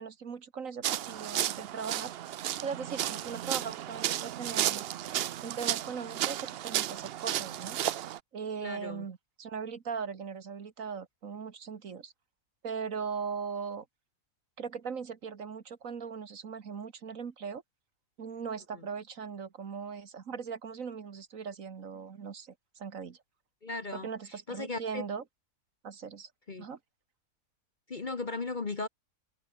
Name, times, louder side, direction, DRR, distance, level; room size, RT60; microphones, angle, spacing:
voice 1, 0.0-4.9 5.4-7.8 8.3-12.1 12.6-13.9 14.6-17.6 18.2-23.2 23.9-25.2 25.8-26.3 26.6-26.8, right 6 dB, 60° right, 1.8 m, -39 dB
sound 1, 0.8-8.2, right 12 dB, 85° right, 0.5 m, -33 dB
voice 2, 8.6-9.1 23.6-24.1 24.5-25.0 26.5-26.7 27.9-28.9, left 3 dB, 35° left, 1.2 m, -36 dB
omnidirectional pair, 1.7 m